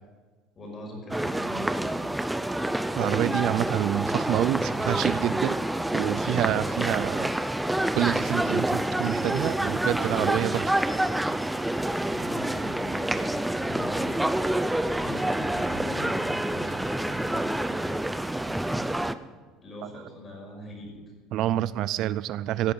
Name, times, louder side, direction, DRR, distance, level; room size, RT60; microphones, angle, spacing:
voice 1, 0.6-1.9 12.1-14.1 14.9-18.0 19.6-21.0, left 1 dB, 25° left, 0 dB, 5.7 m, -42 dB
sound 1, 1.1-19.1, right 1 dB, 5° right, 0.6 m, -27 dB
voice 2, 2.9-5.6 5.9-7.3 7.9-10.7 21.3-22.7, right 13 dB, 55° right, 17 dB, 0.4 m, -27 dB
16.0 x 9.1 x 7.2 m, 1.3 s
cardioid pair, 135°, 0 cm